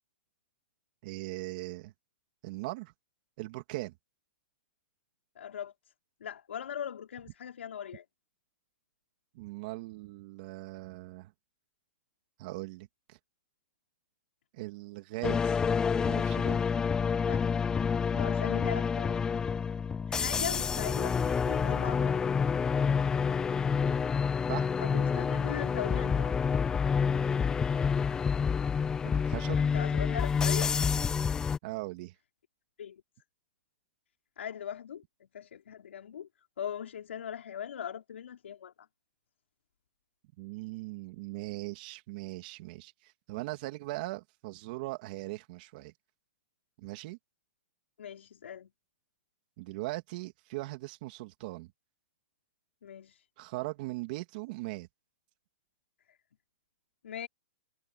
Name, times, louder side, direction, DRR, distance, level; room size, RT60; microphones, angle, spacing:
voice 1, 1.0-1.9 2.4-2.9 3.4-3.9 9.3-11.3 12.4-13.2 14.5-15.6 16.0-16.6 20.2-20.3 24.5-24.7 29.0-29.6 31.6-32.1 40.4-45.9 46.8-47.2 49.6-51.7 53.4-54.9, right 21 dB, 45° right, 2.9 m, -39 dB
voice 2, 5.3-5.7 6.2-8.0 17.2-17.4 18.1-19.2 20.1-22.2 24.8-26.4 29.7-30.7 32.8-33.0 34.4-35.0 35.3-36.3 36.6-38.9 48.0-48.7 52.8-53.2 56.1-56.2 57.0-57.3, left 9 dB, 80° left, 5.0 m, -40 dB
sound 1, 15.2-31.6, left 6 dB, 10° left, 0.5 m, -28 dB
hypercardioid pair, 150°, 7 cm